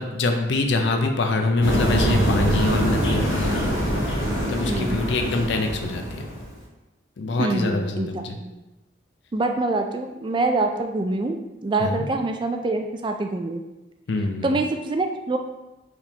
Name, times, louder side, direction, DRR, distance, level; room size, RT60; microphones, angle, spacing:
voice 1, 0.0-3.6 4.4-6.3 7.2-8.4 11.8-12.1 14.1-14.6, left 2 dB, 60° left, 4 dB, 0.5 m, -25 dB
sound 1, 1.6-6.6, equal, 75° left, 1.2 m, -24 dB
voice 2, 4.7-5.0 7.4-8.5 9.3-11.4 11.6-13.6 14.4-15.4, right 2 dB, 25° right, 5 dB, 0.3 m, -25 dB
4.6 x 3.5 x 2.9 m, 1.0 s
head